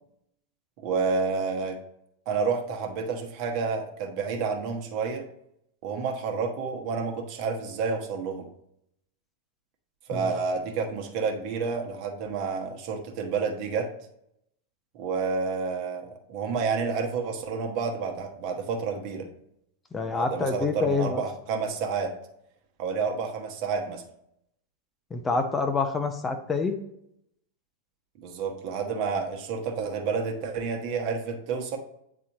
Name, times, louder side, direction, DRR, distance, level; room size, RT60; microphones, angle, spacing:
voice 1, 0.8-1.8 2.3-5.3 5.8-8.5 10.1-13.9 14.9-19.3 20.1-22.2 22.8-24.0 28.2-31.8, right 5 dB, 45° right, 4 dB, 1.1 m, -29 dB
voice 2, 19.9-21.2 25.1-26.8, left 4 dB, 15° left, 7 dB, 0.6 m, -27 dB
8.4 x 4.1 x 2.8 m, 0.76 s
figure-of-eight pair, 95°, 0 cm